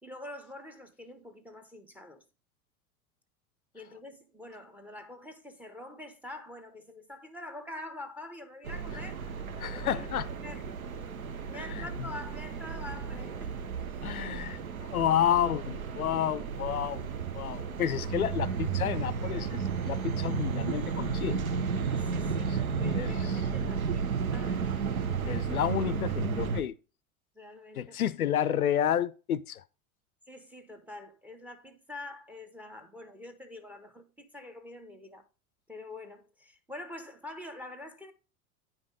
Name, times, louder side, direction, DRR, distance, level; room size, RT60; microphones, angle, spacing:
voice 1, 0.0-2.2 3.7-9.2 9.7-10.1 10.4-10.6 11.5-13.5 17.8-18.0 21.9-24.7 27.3-28.0 30.3-35.3 35.7-38.1, left 2 dB, 5° right, 0.7 m, -45 dB
sound 1, 8.6-26.6, right 6 dB, 70° right, 0.9 m, -33 dB
voice 2, 9.6-10.2 11.8-11.9 14.0-17.1 17.3-21.4 22.5-22.6 22.9-23.3 25.3-26.7 27.8-29.6, left 10 dB, 75° left, 0.5 m, -30 dB
9.2 x 5.3 x 3.7 m
figure-of-eight pair, 85°, 43 cm